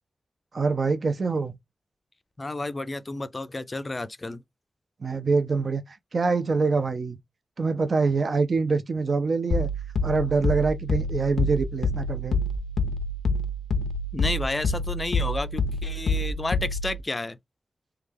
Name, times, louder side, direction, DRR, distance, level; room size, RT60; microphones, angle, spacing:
voice 1, 0.5-1.6 5.0-7.2 7.6-9.7 10.0-12.4, right 4 dB, 50° right, 0.4 m, -25 dB
voice 2, 2.4-4.4 14.1-17.4, left 2 dB, 25° left, 0.4 m, -31 dB
sound 1, 9.5-17.0, left 2 dB, 85° left, 0.4 m, -27 dB
3.2 x 2.2 x 3.4 m
wide cardioid pair, 135°, 0 cm